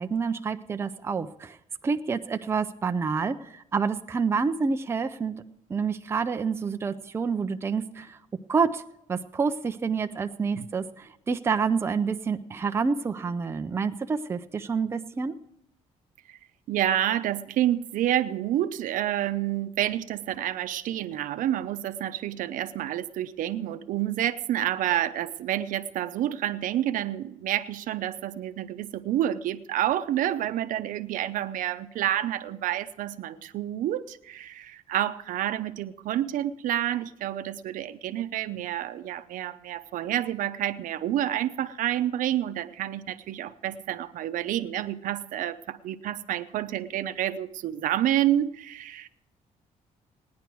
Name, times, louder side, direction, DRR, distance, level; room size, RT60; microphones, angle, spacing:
voice 1, 0.0-1.6 1.8-5.4 5.7-8.2 8.5-8.8 9.1-15.4, right 5 dB, 20° right, 8 dB, 0.5 m, -28 dB
voice 2, 16.7-49.2, right 12 dB, 80° right, 11 dB, 0.6 m, -29 dB
17.5 x 10.5 x 4.6 m, 0.80 s
cardioid pair, 170°, 14 cm